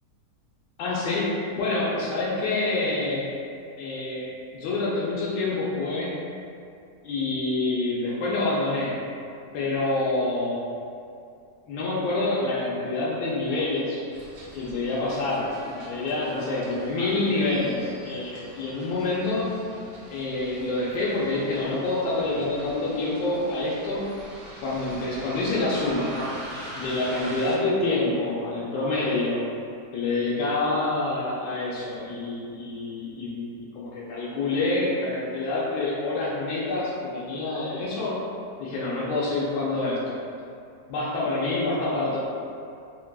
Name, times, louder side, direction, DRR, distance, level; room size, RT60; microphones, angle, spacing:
voice 1, 0.8-3.3 3.8-4.3 4.5-6.2 7.0-8.9 9.5-10.6 11.7-14.0 14.5-19.5 20.1-24.0 24.6-26.1 26.7-29.4 29.9-38.2 38.6-40.2 40.9-42.2, left 2 dB, 90° left, -7 dB, 1.2 m, -27 dB
Bus, 14.1-27.5, right 1 dB, 55° right, 0.6 m, -42 dB
3.7 x 2.2 x 2.2 m, 2.5 s
omnidirectional pair, 1.8 m